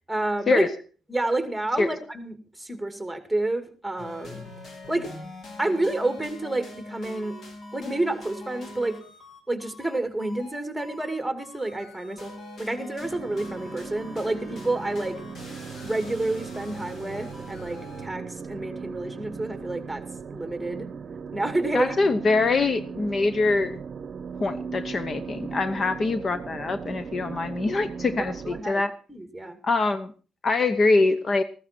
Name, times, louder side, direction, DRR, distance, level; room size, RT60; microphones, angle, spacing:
voice 1, 0.1-0.7 1.1-4.4 4.9-5.1 5.6-7.4 7.7-9.0 9.5-12.3 12.6-15.2 15.8-20.0 20.3-20.9 21.3-21.9 28.2-29.6, right 2 dB, ahead, 8 dB, 2.3 m, -29 dB
sound 1, 4.0-18.1, left 1 dB, 60° left, 4.1 m, -42 dB
sound 2, 13.0-28.6, right 5 dB, 50° right, 0.8 m, -38 dB
voice 2, 21.7-23.8 24.4-28.9 29.6-30.1 30.4-31.4, left 3 dB, 40° left, 12 dB, 0.8 m, -24 dB
14.5 x 14.0 x 4.4 m, 0.37 s
cardioid pair, 90°, 0 cm